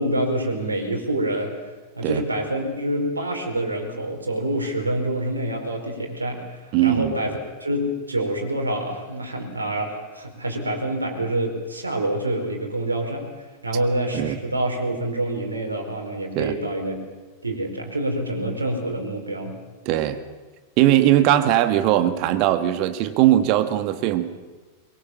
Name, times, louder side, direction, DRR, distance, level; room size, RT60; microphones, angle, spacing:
voice 1, 0.0-1.5 2.0-6.4 6.8-7.3 7.6-13.2 13.6-17.0 17.4-19.5, right 1 dB, 80° right, 3 dB, 4.8 m, -26 dB
voice 2, 6.7-7.1 14.1-14.4 16.4-16.5 19.9-20.2 20.8-24.3, right 13 dB, 45° right, 10 dB, 2.0 m, -19 dB
23.0 x 22.5 x 7.2 m, 1.3 s
figure-of-eight pair, 90°, 0 cm